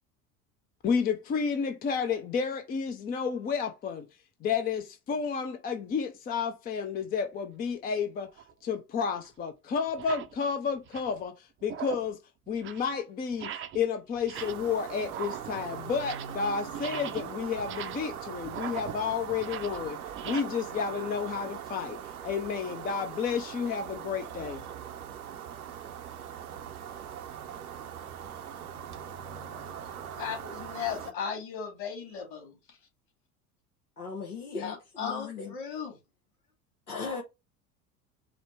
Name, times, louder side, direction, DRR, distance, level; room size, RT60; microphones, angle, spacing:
voice 1, 0.8-4.1 4.4-8.3 8.6-12.2 12.5-20.0 20.2-22.0 22.2-24.7, left 6 dB, 20° left, 0.5 m, -31 dB
sound 1, 8.3-8.5 9.2-9.3 9.9-10.4 10.7-11.2 11.6-12.2 12.5-12.9 13.3-13.9 14.2-14.7 15.0-16.4 16.7-20.4, right 10 dB, 30° right, 0.6 m, -41 dB
sound 2, 14.3-31.1, right 9 dB, 75° right, 0.8 m, -41 dB
voice 2, 30.1-32.8 34.5-36.0, left 7 dB, 45° left, 2.8 m, -36 dB
voice 3, 34.0-35.5 36.9-37.2, left 5 dB, 80° left, 1.1 m, -37 dB
5.0 x 2.1 x 4.5 m
figure-of-eight pair, 75°, 44 cm